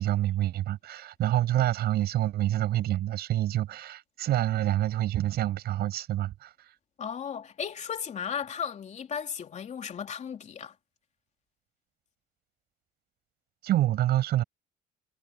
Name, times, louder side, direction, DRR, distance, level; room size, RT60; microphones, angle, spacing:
voice 1, 0.0-6.8 13.6-14.4, right 13 dB, 70° right, 6.5 m, -27 dB
voice 2, 7.0-10.7, left 7 dB, 45° left, 3.2 m, -35 dB
cardioid pair, 110°, 17 cm